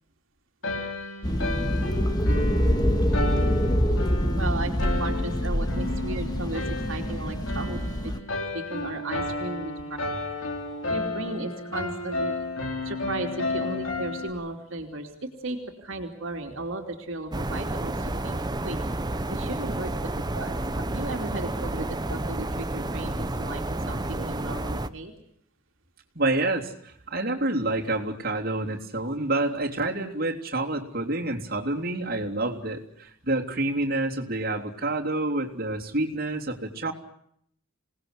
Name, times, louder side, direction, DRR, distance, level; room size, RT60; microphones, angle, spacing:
sound 1, 0.6-14.3, left 2 dB, 65° left, 4.6 m, -33 dB
sound 2, 1.2-8.2, equal, 20° left, 1.9 m, -25 dB
voice 1, 4.3-6.6 6.9-7.8 8.0-8.1 8.5-10.0 10.9-12.3 12.6-18.8 19.3-25.1, right 2 dB, 60° right, 2 dB, 3.0 m, -35 dB
sound 3, 17.3-24.9, right 1 dB, 20° right, 0.9 m, -30 dB
voice 2, 26.1-36.9, right 2 dB, 45° right, -1 dB, 3.4 m, -28 dB
27.0 x 19.0 x 8.1 m, 0.71 s
head